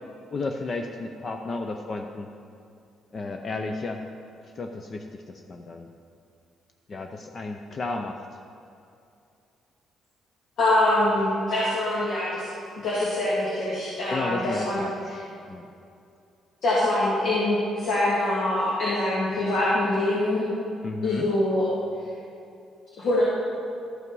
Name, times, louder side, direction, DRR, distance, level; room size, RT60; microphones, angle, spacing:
voice 1, 0.3-2.3 3.1-4.0 4.4-5.9 6.9-8.2 14.1-15.0 15.5-15.7 20.8-21.3, left 3 dB, 35° left, 4 dB, 0.5 m, -33 dB
voice 2, 10.6-12.5 12.8-15.1 16.6-20.4 21.0-21.7 23.0-23.2, left 1 dB, 70° left, -8 dB, 2.5 m, -24 dB
13.0 x 5.6 x 5.4 m, 2.6 s
cardioid pair, 130°, 0 cm